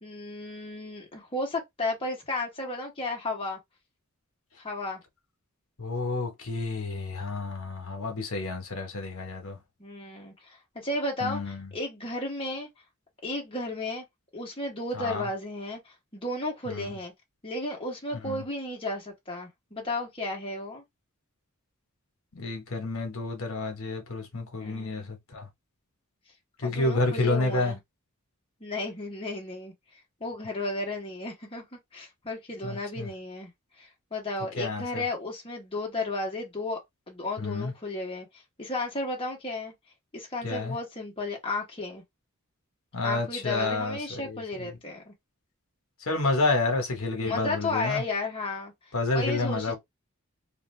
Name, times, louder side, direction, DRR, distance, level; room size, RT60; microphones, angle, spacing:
voice 1, 0.0-3.6 4.6-5.0 9.8-12.7 13.2-14.0 14.3-17.1 17.4-20.8 24.6-25.1 26.6-27.8 28.6-29.7 30.2-33.5 33.8-36.8 37.1-38.3 38.6-39.7 40.1-42.0 43.0-45.1 47.2-48.7 49.1-49.8, left 2 dB, 25° left, 1.0 m, -33 dB
voice 2, 5.8-9.6 11.2-11.7 14.9-15.3 16.7-16.9 18.2-18.4 22.3-25.5 26.6-27.7 32.6-33.1 34.6-35.0 37.4-37.7 40.4-40.8 42.9-44.7 46.1-48.0 48.9-49.8, left 3 dB, 70° left, 1.0 m, -30 dB
2.5 x 2.3 x 3.2 m
head